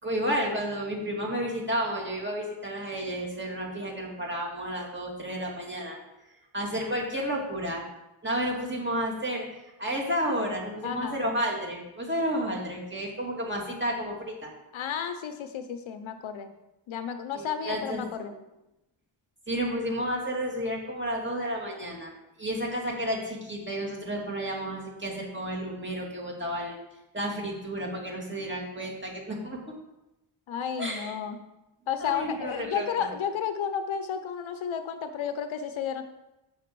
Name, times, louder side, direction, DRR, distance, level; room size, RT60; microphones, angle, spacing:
voice 1, 0.0-6.0 6.5-7.8 8.2-9.5 9.8-14.5 17.3-18.3 19.5-22.1 22.4-26.8 27.1-29.6 30.8-31.1 32.0-33.1, equal, 20° right, -2 dB, 2.1 m, -31 dB
voice 2, 10.8-11.2 14.7-16.5 16.9-18.3 30.5-31.4 31.9-36.0, left 7 dB, 70° left, 9 dB, 0.8 m, -32 dB
7.1 x 5.9 x 4.6 m, 0.94 s
cardioid pair, 110°, 49 cm